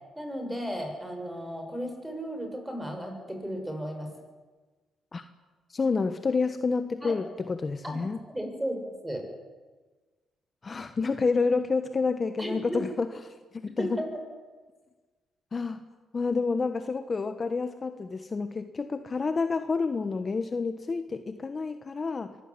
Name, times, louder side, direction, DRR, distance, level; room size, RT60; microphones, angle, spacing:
voice 1, 0.2-4.1 7.0-7.1 7.8-8.0 8.3-9.2 12.4-12.8 13.8-14.1, equal, 10° right, 5 dB, 6.5 m, -34 dB
voice 2, 5.7-8.2 10.6-13.4 13.8-14.0 15.5-15.8 16.1-22.4, left 4 dB, 35° left, 9 dB, 1.3 m, -29 dB
23.5 x 15.5 x 9.9 m, 1.3 s
cardioid pair, 90°, 0 cm